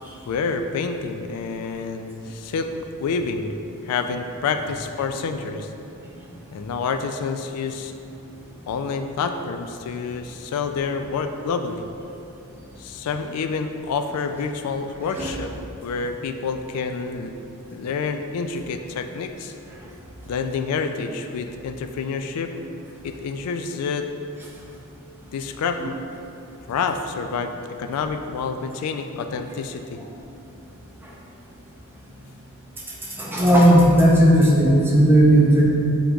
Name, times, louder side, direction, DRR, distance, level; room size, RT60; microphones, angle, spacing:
voice 1, 0.3-2.7 3.0-3.5 3.8-5.7 6.5-7.9 8.7-11.8 12.8-15.5 15.8-17.3 17.7-19.5 20.3-22.5 23.0-24.1 25.3-26.0 26.7-27.5 27.8-30.0, left 5 dB, 85° left, 11 dB, 0.3 m, -28 dB
voice 2, 33.0-35.6, right 1 dB, 10° right, -4 dB, 0.6 m, -16 dB
6.1 x 3.8 x 2.3 m, 2.8 s
head